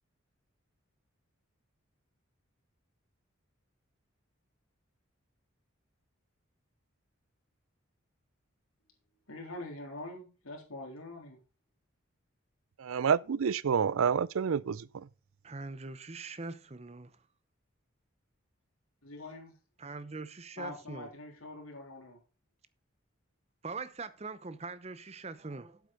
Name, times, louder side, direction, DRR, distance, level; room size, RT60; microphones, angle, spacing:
voice 1, 9.3-11.4 19.0-19.5 20.6-22.2, left 2 dB, 90° left, 3.5 m, -44 dB
voice 2, 12.8-15.1, right 6 dB, 80° right, 0.4 m, -29 dB
voice 3, 15.4-17.1 19.8-21.1 23.6-25.8, right 3 dB, 30° right, 0.7 m, -42 dB
8.4 x 8.2 x 5.3 m
head